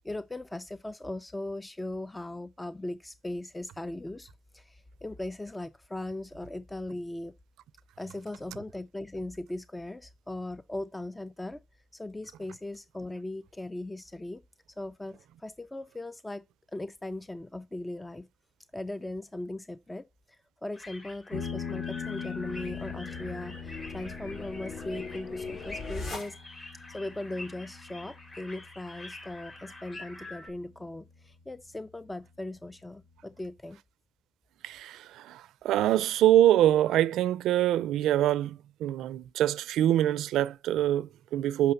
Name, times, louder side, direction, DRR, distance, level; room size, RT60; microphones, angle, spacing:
voice 1, 0.0-7.3 8.0-11.6 11.9-14.4 14.8-16.4 16.7-18.3 18.7-26.4 26.9-33.8, left 1 dB, 15° left, 0.4 m, -39 dB
sound 1, 20.7-30.5, left 2 dB, 40° left, 2.8 m, -46 dB
sound 2, 21.3-30.3, left 6 dB, 80° left, 1.6 m, -42 dB
sound 3, 22.3-26.8, left 3 dB, 55° left, 5.6 m, -41 dB
voice 2, 34.6-41.7, right 12 dB, 85° right, 0.4 m, -25 dB
6.6 x 5.6 x 7.0 m
cardioid pair, 90°, 0 cm